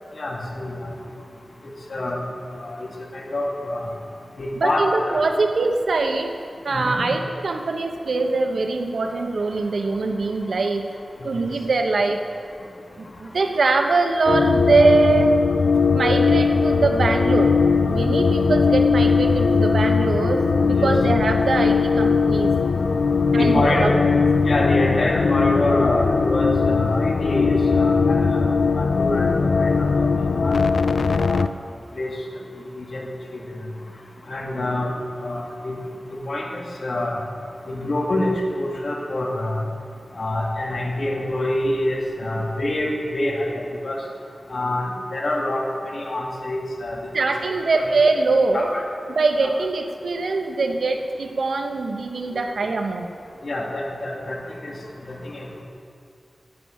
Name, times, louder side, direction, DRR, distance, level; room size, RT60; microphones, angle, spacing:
voice 1, 0.2-0.9 1.9-2.2 2.5-3.9 4.4-5.3 6.7-6.9 11.2-11.5 20.8-20.9 23.3-23.9 24.4-28.5 28.7-30.1 30.4-30.6 31.1-31.4 32.0-32.1 32.8-33.1 33.3-33.4 34.3-34.9 35.2-35.8 36.1-37.2 37.7-39.6 40.1-44.0 44.5-47.0 47.8-47.9 48.5-48.8 49.4-49.5 53.4-54.7 55.1-55.6, left 1 dB, 60° left, -1 dB, 2.2 m, -26 dB
voice 2, 4.6-6.3 6.6-10.8 11.2-12.2 13.0-15.3 15.9-17.5 17.9-22.6 23.3-23.9 47.1-48.7 49.1-53.1, right 3 dB, 90° right, 4 dB, 1.0 m, -22 dB
sound 1, 14.3-31.5, left 4 dB, 80° left, 0.4 m, -19 dB
11.0 x 8.7 x 8.6 m, 2.4 s
wide cardioid pair, 105°, 0 cm